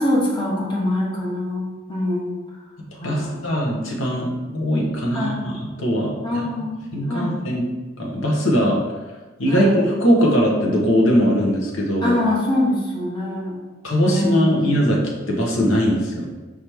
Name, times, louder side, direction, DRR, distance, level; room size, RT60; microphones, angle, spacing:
voice 1, 0.0-2.4 2.9-3.6 5.1-5.5 6.2-7.4 9.5-9.8 12.0-13.6 14.0-14.7, left 1 dB, 25° left, -4 dB, 0.9 m, -24 dB
voice 2, 3.0-6.1 6.9-7.7 8.0-8.8 9.4-12.2 13.8-15.0 15.3-16.3, equal, 80° left, -2 dB, 1.0 m, -20 dB
4.9 x 3.0 x 3.4 m, 1.2 s
head